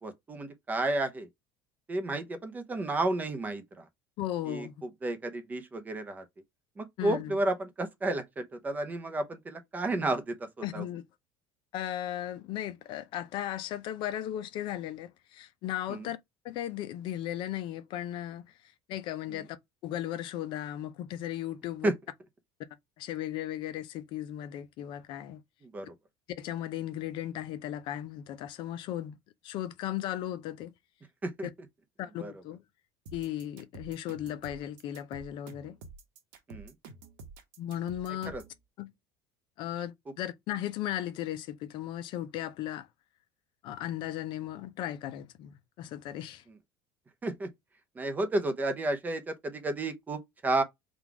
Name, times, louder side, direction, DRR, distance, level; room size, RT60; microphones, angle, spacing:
voice 1, 0.0-1.3 1.9-3.9 4.5-6.2 6.8-10.8 15.9-16.1 19.3-19.4 21.8-21.9 25.6-25.9 31.2-31.5 32.2-32.3 36.5-36.7 38.3-38.4 47.2-47.5 47.9-50.6, right 2 dB, 15° right, 0.6 m, -32 dB
voice 2, 4.2-4.8 7.0-7.4 10.6-11.0 11.7-16.2 16.4-19.6 19.8-21.9 23.0-25.4 26.3-29.2 29.4-30.7 31.4-31.5 32.0-32.6 33.1-35.8 37.6-38.3 38.8-38.9 39.6-42.9 43.6-46.4, left 12 dB, 50° left, 0.5 m, -36 dB
sound 1, 33.1-38.6, right 3 dB, 85° right, 1.1 m, -48 dB
3.8 x 2.4 x 4.5 m
cardioid pair, 170°, 11 cm